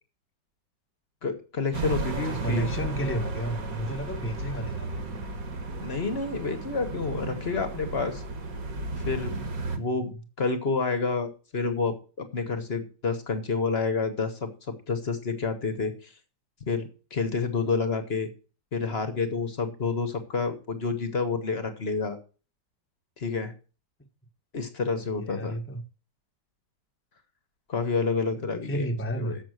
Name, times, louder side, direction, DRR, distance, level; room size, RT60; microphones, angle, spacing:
voice 1, 1.2-2.7 5.8-8.2 9.0-9.3 9.8-16.1 16.7-18.3 18.7-22.2 23.2-23.5 24.5-25.5 27.7-29.4, left 4 dB, 40° left, 1.2 m, -29 dB
sound 1, 1.7-9.8, right 2 dB, 55° right, 1.6 m, -34 dB
voice 2, 1.8-5.2 9.6-10.2 25.0-25.8 28.4-29.4, right 1 dB, 10° left, 0.9 m, -33 dB
7.4 x 6.0 x 7.7 m
omnidirectional pair, 2.0 m